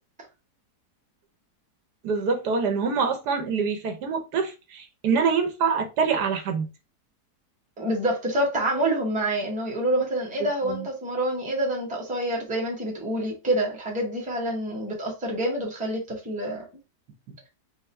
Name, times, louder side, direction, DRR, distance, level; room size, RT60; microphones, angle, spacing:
voice 1, 2.0-6.7 10.7-10.9, right 5 dB, 75° right, 1.4 m, -25 dB
voice 2, 7.8-16.6, right 1 dB, 5° right, 0.9 m, -27 dB
4.4 x 2.1 x 4.3 m
omnidirectional pair, 1.8 m